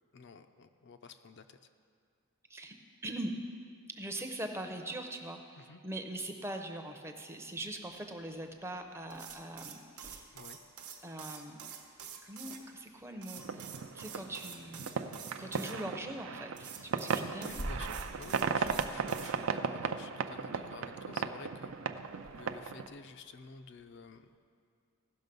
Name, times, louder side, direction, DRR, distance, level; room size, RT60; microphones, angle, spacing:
voice 1, 0.1-1.6 5.6-5.8 10.3-10.6 15.4-15.6 17.4-21.7 22.3-24.3, left 4 dB, 50° left, 8 dB, 0.4 m, -51 dB
voice 2, 3.0-3.3 3.9-10.3 11.0-11.6 12.2-13.7 13.9-15.0 15.4-17.5, right 1 dB, 10° right, 5 dB, 0.6 m, -42 dB
sound 1, 7.7-24.4, right 1 dB, 35° right, 1.0 m, -52 dB
sound 2, 9.1-12.6 13.2-15.7 16.5-19.3, right 8 dB, 85° right, 1.1 m, -47 dB
sound 3, 13.3-22.9, right 5 dB, 60° right, 0.4 m, -36 dB
16.0 x 6.2 x 5.3 m, 2.2 s
head